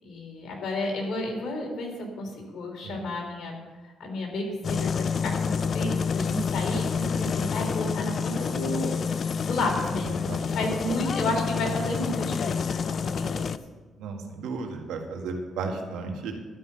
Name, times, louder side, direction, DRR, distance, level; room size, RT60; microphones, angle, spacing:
voice 1, 0.0-13.5, left 1 dB, 70° left, 1 dB, 3.5 m, -32 dB
sound 1, 4.6-13.6, left 6 dB, 50° left, 0.4 m, -28 dB
voice 2, 14.0-16.3, right 4 dB, 90° right, 2 dB, 1.8 m, -34 dB
12.0 x 5.6 x 8.7 m, 1.3 s
cardioid pair, 90°, 0 cm